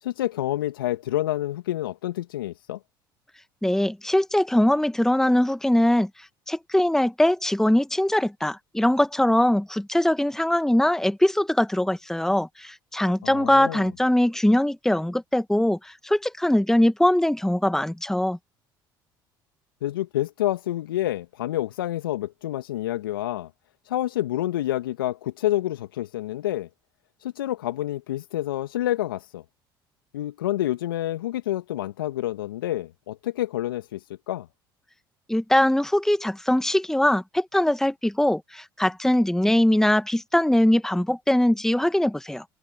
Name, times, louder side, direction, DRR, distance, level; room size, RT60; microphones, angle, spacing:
voice 1, 0.0-2.8 13.2-13.8 19.8-23.5 23.8-26.7 27.2-29.4 30.1-34.5, left 14 dB, 80° left, 1.5 m, -28 dB
voice 2, 3.6-6.1 6.5-18.4 35.3-42.4, left 1 dB, 5° left, 1.6 m, -22 dB
hypercardioid pair, 60°, 11 cm